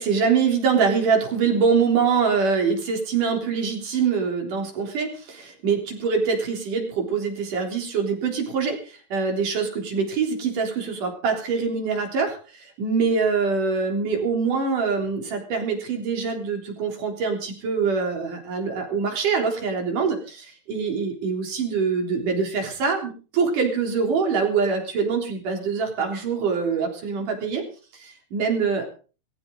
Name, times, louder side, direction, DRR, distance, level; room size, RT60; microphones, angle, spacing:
voice 1, 0.0-27.6 27.9-28.9, right 5 dB, 85° right, 3 dB, 5.3 m, -24 dB
19.5 x 15.5 x 3.9 m, 0.37 s
omnidirectional pair, 3.6 m